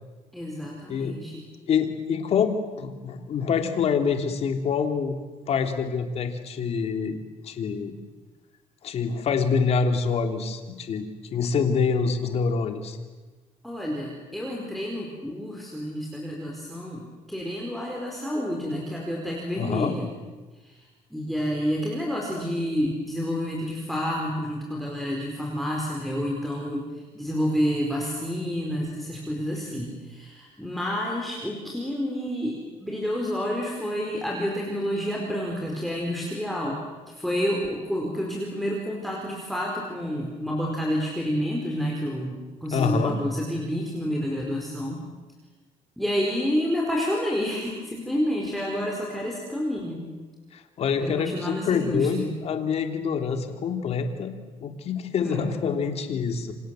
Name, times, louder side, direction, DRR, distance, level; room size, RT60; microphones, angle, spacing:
voice 1, 0.3-1.4 13.6-20.1 20.6-20.8 21.1-26.9 27.1-36.8 37.1-45.0 46.0-50.1 51.0-52.3 55.2-55.5, equal, ahead, -2 dB, 4.6 m, -29 dB
voice 2, 1.7-5.2 5.5-7.2 7.4-8.0 8.8-13.0 19.6-20.0 42.7-43.2 50.5-54.3 54.6-56.5, left 6 dB, 50° left, 6 dB, 3.2 m, -26 dB
29.5 x 25.5 x 7.8 m, 1.3 s
cardioid pair, 135°, 14 cm